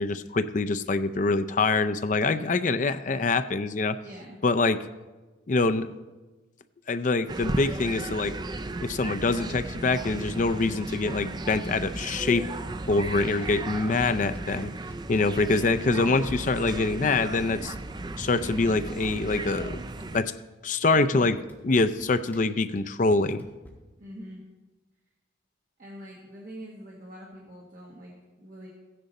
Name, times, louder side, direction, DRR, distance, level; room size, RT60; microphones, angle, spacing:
voice 1, 0.0-4.0 4.4-4.8 5.5-5.9 6.9-8.3 8.8-12.4 12.9-14.7 15.1-17.7 18.2-19.8 20.1-20.3 20.6-21.4 21.6-23.4, left 3 dB, 40° left, 12 dB, 0.5 m, -25 dB
voice 2, 4.0-4.4 13.2-13.6 18.4-18.5 20.9-21.4 24.0-24.4 25.8-28.7, equal, 45° right, -3 dB, 1.5 m, -44 dB
sound 1, 7.3-20.2, right 2 dB, 20° right, 0.4 m, -35 dB
sound 2, 12.9-13.8 14.1-15.9 17.1-17.2 17.5-17.9 18.2-19.5 20.4-20.5 21.0-23.7, equal, 10° left, 1.6 m, -53 dB
14.5 x 10.0 x 4.1 m, 1.2 s
head